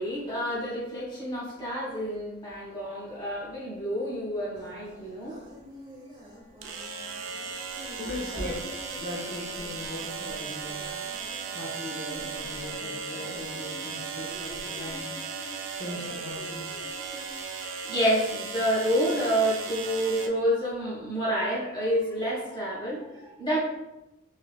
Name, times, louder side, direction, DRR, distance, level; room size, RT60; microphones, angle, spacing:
voice 1, 0.0-5.4 7.7-7.8 8.3-8.5 14.5-14.6 17.9-23.6, equal, 20° left, -7 dB, 1.4 m, -29 dB
sound 1, 4.5-17.4, equal, 20° right, 0.8 m, -47 dB
sound 2, 4.6-4.7 6.6-20.3, right 5 dB, 65° right, 0.4 m, -37 dB
voice 2, 8.0-8.6 9.0-10.8 11.5-15.1 15.8-16.8, left 1 dB, 60° left, -3 dB, 0.6 m, -39 dB
4.1 x 3.0 x 2.3 m, 0.94 s
head